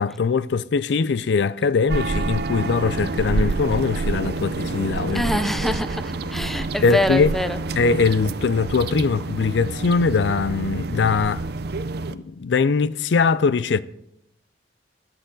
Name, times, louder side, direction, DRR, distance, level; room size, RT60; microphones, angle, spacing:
voice 1, 0.0-5.3 6.8-7.3 7.8-11.4 12.1-13.8, left 4 dB, 70° left, 0.4 m, -21 dB
sound 1, 1.9-12.1, right 3 dB, 60° right, 0.5 m, -28 dB
voice 2, 5.1-7.6, left 1 dB, ahead, 0.5 m, -25 dB
19.5 x 6.5 x 3.9 m
head